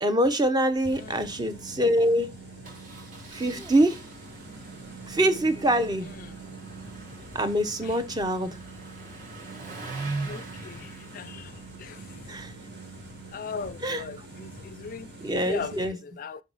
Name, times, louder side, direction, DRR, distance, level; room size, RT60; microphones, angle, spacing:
voice 1, 0.0-2.3 3.3-4.0 5.1-6.1 7.3-8.5 12.3-12.5 13.8-14.0 15.2-16.0, right 1 dB, 25° right, 0.6 m, -24 dB
Engine starting, 0.7-1.0 1.2-1.3 1.6-1.7 2.6-13.7, right 3 dB, 50° right, 1.3 m, -42 dB
sound 1, 0.8-15.9, right 3 dB, 80° right, 2.2 m, -44 dB
voice 2, 10.3-10.8 11.1-11.3 13.3-14.2 14.7-15.1 15.5-15.7 16.2-16.4, left 5 dB, 50° left, 0.4 m, -36 dB
5.3 x 4.7 x 3.9 m
head